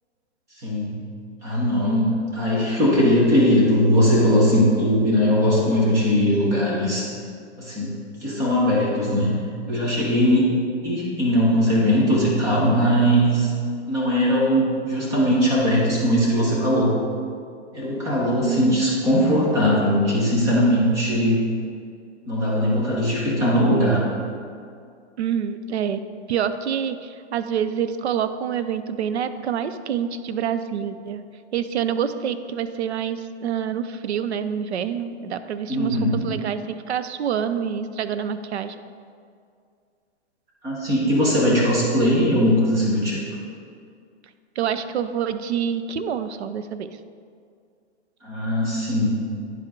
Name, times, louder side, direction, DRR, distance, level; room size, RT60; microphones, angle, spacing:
voice 1, 0.6-1.0 1.4-7.1 7.6-9.4 9.7-10.5 10.8-13.5 13.9-16.9 17.7-21.5 22.3-24.0 35.7-36.2 40.6-43.2 48.2-49.2, equal, 10° right, -6 dB, 0.9 m, -20 dB
voice 2, 18.5-18.8 25.2-26.0 26.3-31.2 31.5-38.8 44.6-46.9, right 8 dB, 70° right, 11 dB, 0.5 m, -27 dB
10.5 x 4.5 x 3.6 m, 2.3 s
hypercardioid pair, 170°, 35 cm